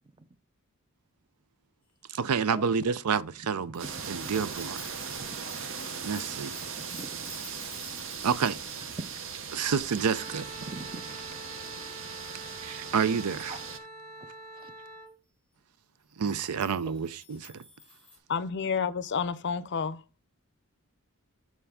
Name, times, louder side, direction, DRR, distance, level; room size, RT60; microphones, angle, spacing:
voice 1, 2.1-4.8 6.0-6.5 8.2-8.6 9.5-10.5 12.6-13.6 16.2-17.6, right 6 dB, 85° right, 0.5 m, -29 dB
sound 1, 3.7-11.1 11.4-11.5 11.8-11.9 12.3-12.4 12.8-12.9 13.2-13.8 16.2-18.2, left 4 dB, 5° left, 1.3 m, -52 dB
sound 2, 3.8-13.8, right 6 dB, 60° right, 0.8 m, -39 dB
voice 2, 5.3-5.8 6.8-7.3 10.7-11.0 13.2-13.6 14.6-14.7, right 2 dB, 20° right, 0.6 m, -44 dB
Wind instrument woodwind instrument, 10.0-15.1, right 1 dB, 40° right, 1.6 m, -46 dB
voice 3, 18.3-20.2, left 6 dB, 50° left, 0.5 m, -30 dB
7.0 x 4.5 x 3.6 m
head